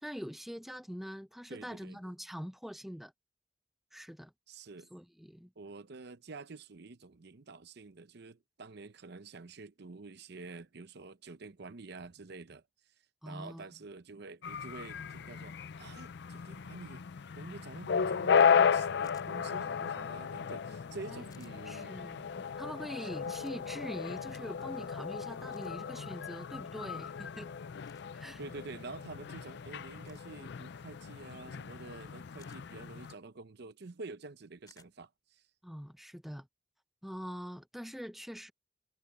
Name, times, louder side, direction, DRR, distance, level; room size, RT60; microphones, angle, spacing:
voice 1, 0.0-3.1 3.9-4.3 4.9-5.5 13.2-13.6 21.1-21.2 21.7-27.5 28.1-28.4 35.6-36.5 37.0-38.5, equal, ahead, 0.8 m, -44 dB
voice 2, 1.5-2.0 4.5-4.9 5.6-12.6 13.2-17.0 17.3-22.0 23.0-23.1 28.4-35.4, right 3 dB, 65° right, 0.7 m, -48 dB
sound 1, 14.4-33.1, left 7 dB, 65° left, 0.5 m, -34 dB
sound 2, 19.0-19.3 21.3-21.5 23.3-23.6 25.5-25.7 27.8-28.1 30.0-30.3 32.4-32.6 34.7-34.9, left 5 dB, 25° left, 2.4 m, -61 dB
head